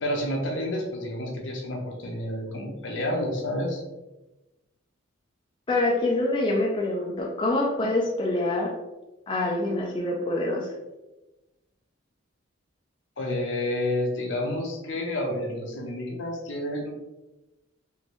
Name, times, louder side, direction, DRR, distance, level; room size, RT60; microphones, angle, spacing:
voice 1, 0.0-3.8 13.2-16.9, left 1 dB, 70° left, 1 dB, 0.8 m, -29 dB
voice 2, 5.7-8.8 9.3-10.7, left 2 dB, 25° left, -1 dB, 0.4 m, -25 dB
3.6 x 2.5 x 3.0 m, 1.0 s
head